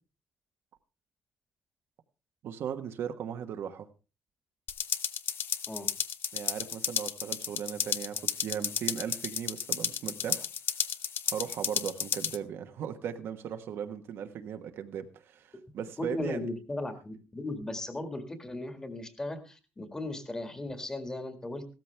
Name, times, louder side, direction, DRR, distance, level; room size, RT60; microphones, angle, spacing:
voice 1, 2.4-3.9 6.3-10.4 11.3-16.4, right 8 dB, 65° right, 7 dB, 1.2 m, -37 dB
sound 1, 4.7-12.4, left 8 dB, 55° left, 0.8 m, -33 dB
voice 2, 16.0-21.7, left 2 dB, 15° left, 8 dB, 1.8 m, -37 dB
16.0 x 13.5 x 3.3 m, 0.32 s
cardioid pair, 155°, 4 cm